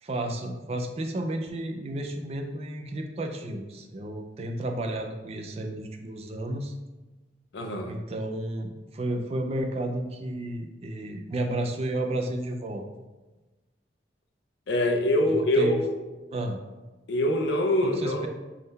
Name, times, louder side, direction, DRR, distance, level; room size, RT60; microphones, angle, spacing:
voice 1, 0.0-6.7 7.9-12.8 15.2-15.8 16.3-16.6 17.8-18.3, right 1 dB, 35° right, 4 dB, 0.3 m, -32 dB
voice 2, 7.5-8.0 14.7-15.9 17.1-18.3, left 1 dB, 80° left, 3 dB, 0.5 m, -24 dB
3.6 x 2.2 x 4.0 m, 1.1 s
head